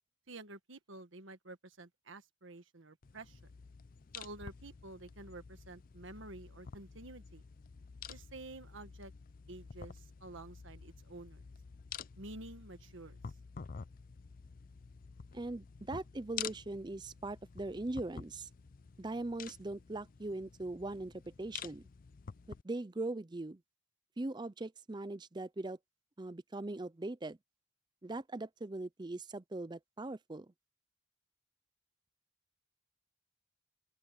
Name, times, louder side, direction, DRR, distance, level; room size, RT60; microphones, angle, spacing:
voice 1, 0.3-3.4 4.1-7.4 8.1-9.1 9.5-11.4 12.2-13.2, right 2 dB, 65° right, 1.5 m, -50 dB
sound 1, 3.0-22.6, left 7 dB, 40° left, 0.5 m, -50 dB
voice 2, 15.3-18.5 19.0-21.9 22.5-23.6 24.2-25.8 26.2-27.4 28.0-30.5, right 2 dB, 20° right, 0.5 m, -40 dB
open air
head